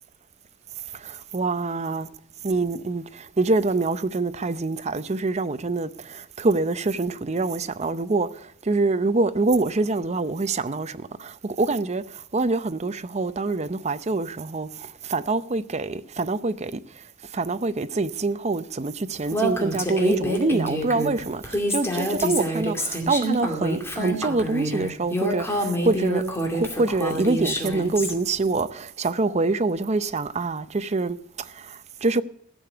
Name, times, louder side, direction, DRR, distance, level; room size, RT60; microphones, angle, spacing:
voice 1, 0.9-2.1 2.4-8.3 8.6-12.0 12.3-16.8 17.3-26.2 26.5-32.2, right 3 dB, 35° right, 0.6 m, -25 dB
Female speech woman speaking, 19.3-28.1, equal, 15° left, 2.4 m, -27 dB
15.5 x 6.8 x 8.0 m
head